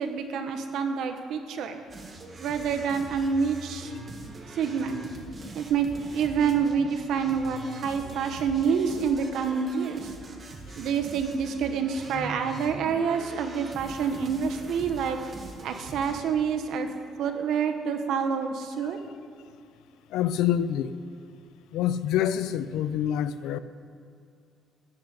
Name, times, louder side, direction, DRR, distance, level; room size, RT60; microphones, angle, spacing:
voice 1, 0.0-1.8 2.4-3.9 4.6-5.0 5.5-10.1 10.8-15.2 15.6-16.9 17.2-19.0, right 6 dB, 70° right, 6 dB, 1.4 m, -27 dB
sound 1, 1.9-16.2, right 2 dB, 30° right, 1.7 m, -43 dB
voice 2, 20.1-20.9 21.7-23.6, left 10 dB, 90° left, 13 dB, 0.6 m, -26 dB
14.0 x 6.8 x 9.9 m, 2.5 s
cardioid pair, 145°, 0 cm